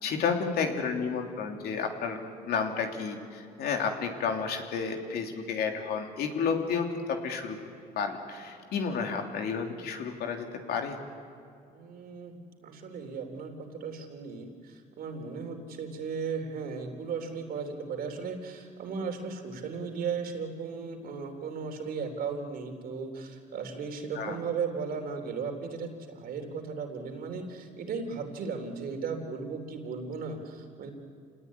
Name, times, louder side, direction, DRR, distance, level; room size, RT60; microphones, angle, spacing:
voice 1, 0.0-7.6 8.0-11.0 24.2-24.4, left 5 dB, 70° left, 3 dB, 3.2 m, -31 dB
voice 2, 11.7-30.9, right 5 dB, 60° right, 4 dB, 3.6 m, -36 dB
27.5 x 19.0 x 9.8 m, 2.3 s
cardioid pair, 110°, 17 cm